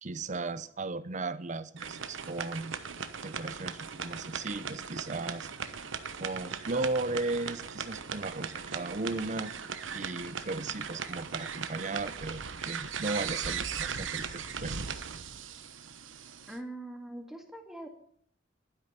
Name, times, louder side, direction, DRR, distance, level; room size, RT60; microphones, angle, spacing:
voice 1, 0.0-2.8 3.2-5.5 6.1-9.5 9.9-14.8, right 3 dB, 40° right, 0.8 m, -36 dB
sound 1, 1.8-16.6, right 6 dB, 90° right, 1.1 m, -38 dB
voice 2, 16.5-17.9, right 1 dB, ahead, 2.3 m, -42 dB
12.0 x 10.5 x 8.3 m
head